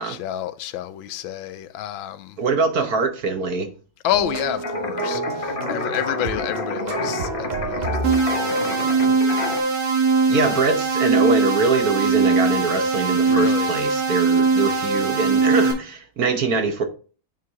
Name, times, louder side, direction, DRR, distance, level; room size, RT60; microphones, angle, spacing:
voice 1, 0.0-2.4 4.0-8.0 8.3-8.9 10.5-10.7 13.3-13.7, left 12 dB, 85° left, 1.4 m, -29 dB
voice 2, 2.4-3.7 10.3-16.8, right 4 dB, 55° right, 1.3 m, -23 dB
sound 1, 4.1-8.6, right 3 dB, 35° right, 0.7 m, -29 dB
sound 2, 4.6-9.6, left 4 dB, 45° left, 0.7 m, -30 dB
sound 3, 8.0-15.7, right 4 dB, 85° right, 3.0 m, -20 dB
9.1 x 4.7 x 3.5 m
omnidirectional pair, 2.1 m